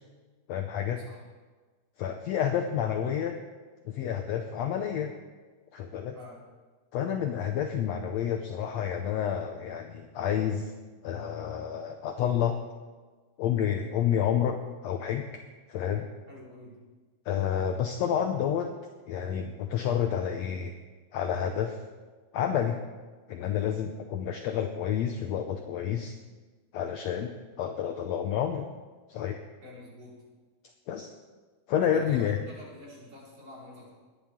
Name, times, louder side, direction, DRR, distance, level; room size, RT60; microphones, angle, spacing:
voice 1, 0.5-1.0 2.0-3.4 3.8-5.1 5.7-6.1 6.9-10.7 11.0-12.6 13.4-15.2 15.7-16.1 17.3-18.7 19.1-20.7 21.1-21.8 22.3-22.8 23.3-26.2 26.7-28.7 29.1-29.4 30.9-31.1 31.7-32.4, left 9 dB, 75° left, 5 dB, 1.6 m, -29 dB
voice 2, 16.3-16.8 29.6-30.2 31.8-33.9, left 2 dB, 45° right, -6 dB, 5.3 m, -47 dB
21.5 x 10.0 x 3.6 m, 1.4 s
omnidirectional pair, 3.7 m